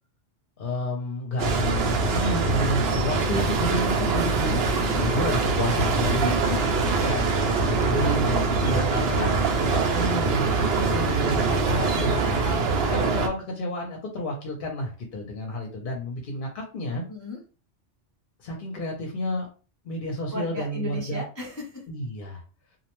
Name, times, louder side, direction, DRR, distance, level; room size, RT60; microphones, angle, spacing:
voice 1, 0.6-4.6 5.0-6.5 7.0-7.2 7.6-9.3 9.7-12.6 12.9-17.0 18.4-19.5 19.8-21.2 21.9-22.4, left 1 dB, 55° left, 1 dB, 0.7 m, -30 dB
sound 1, 1.4-13.3, right 4 dB, 65° right, 0.7 m, -23 dB
voice 2, 6.2-6.6 9.7-10.2 12.1-12.9 17.1-17.4 20.3-21.8, left 3 dB, 30° left, -2 dB, 0.3 m, -36 dB
2.5 x 2.1 x 2.9 m, 0.35 s
omnidirectional pair, 1.2 m